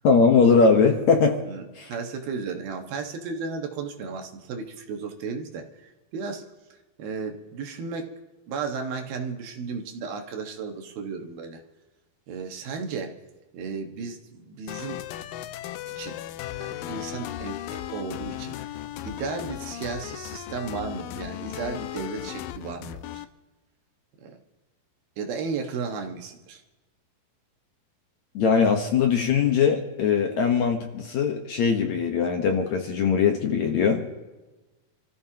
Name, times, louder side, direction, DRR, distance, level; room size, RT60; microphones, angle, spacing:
voice 1, 0.0-1.4 1.8-1.9 28.4-34.0, left 5 dB, 60° left, 3 dB, 2.1 m, -21 dB
voice 2, 1.5-6.4 7.0-8.1 8.5-11.6 12.3-13.1 13.5-15.0 16.0-16.2 16.5-18.6 19.0-23.2 24.2-24.4 25.2-26.6, right 5 dB, 75° right, 4 dB, 3.3 m, -34 dB
sound 1, 14.7-23.2, left 12 dB, 80° left, 2.2 m, -36 dB
28.0 x 15.0 x 2.9 m, 1.1 s
omnidirectional pair, 4.4 m